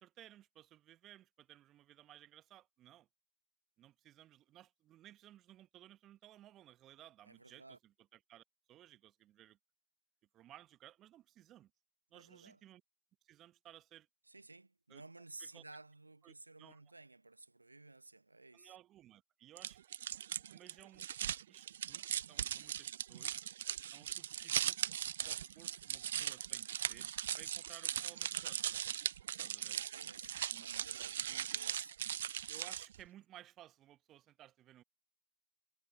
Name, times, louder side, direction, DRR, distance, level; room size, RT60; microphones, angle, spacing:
voice 1, 0.0-3.1 3.8-9.6 10.3-11.7 12.1-12.8 13.2-14.1 14.9-15.0 15.4-15.6 16.2-16.8 18.5-19.8 20.5-23.4 23.9-24.8 25.2-27.1 27.4-28.8 29.4-29.8 30.5-30.7 31.3-31.5 32.5-34.8, right 13 dB, 10° right, 1.2 m, -59 dB
voice 2, 7.2-7.8 12.1-12.6 14.3-18.7 29.7-32.0, right 2 dB, 70° right, 1.2 m, -56 dB
sound 1, 19.6-33.0, right 10 dB, 35° right, 0.4 m, -39 dB
figure-of-eight pair, 145°, 0 cm